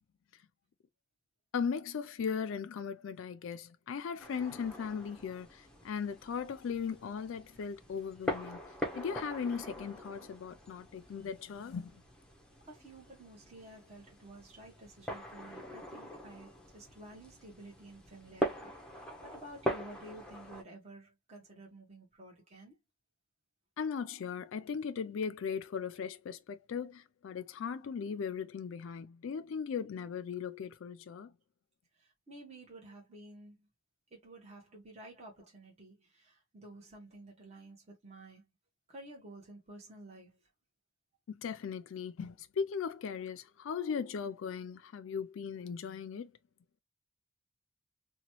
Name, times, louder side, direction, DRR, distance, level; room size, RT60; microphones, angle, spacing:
voice 1, 1.5-8.6 8.9-11.9 23.8-31.3 41.3-46.3, left 6 dB, 65° left, 0.3 m, -38 dB
sound 1, 4.2-20.6, equal, 5° left, 0.6 m, -42 dB
voice 2, 12.7-22.8 31.9-33.7 34.1-38.4 38.9-40.4, right 1 dB, 30° right, 1.0 m, -52 dB
2.9 x 2.2 x 2.9 m
head